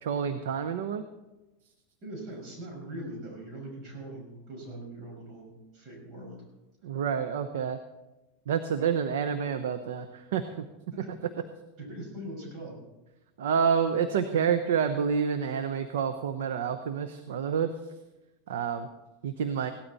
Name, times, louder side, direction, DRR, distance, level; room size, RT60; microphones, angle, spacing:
voice 1, 0.0-1.0 6.8-7.8 8.5-10.7 11.2-11.3 13.4-17.9 18.5-18.9 19.2-19.7, right 7 dB, 85° right, 9 dB, 0.9 m, -28 dB
voice 2, 2.0-6.4 8.8-8.9 10.9-11.3 11.8-12.8, right 1 dB, 45° right, 0 dB, 5.8 m, -42 dB
17.0 x 12.5 x 4.2 m, 1.0 s
supercardioid pair, 130°, 0 cm